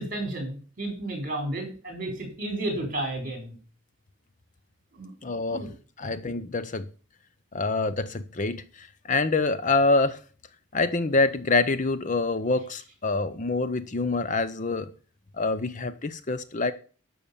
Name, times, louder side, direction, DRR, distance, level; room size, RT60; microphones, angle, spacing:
voice 1, 0.0-3.5 4.9-5.1 5.5-5.7 6.0-6.2, right 1 dB, 40° right, 4 dB, 4.4 m, -32 dB
voice 2, 5.2-5.6 6.0-6.9 7.5-10.2 10.7-14.9 15.4-16.7, left 3 dB, 35° left, 13 dB, 0.7 m, -26 dB
12.0 x 6.1 x 7.0 m, 0.39 s
head